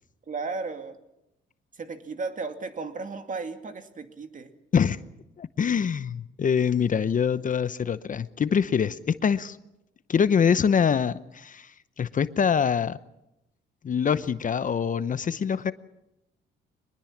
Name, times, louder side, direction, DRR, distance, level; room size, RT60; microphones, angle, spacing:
voice 1, 0.3-1.0 1.8-4.5, right 4 dB, 40° right, 7 dB, 2.4 m, -34 dB
voice 2, 5.4-9.6 10.1-11.7 12.0-13.0 13.8-15.7, left 7 dB, 40° left, 14 dB, 0.8 m, -24 dB
23.5 x 21.0 x 7.3 m, 0.88 s
cardioid pair, 90°, 20 cm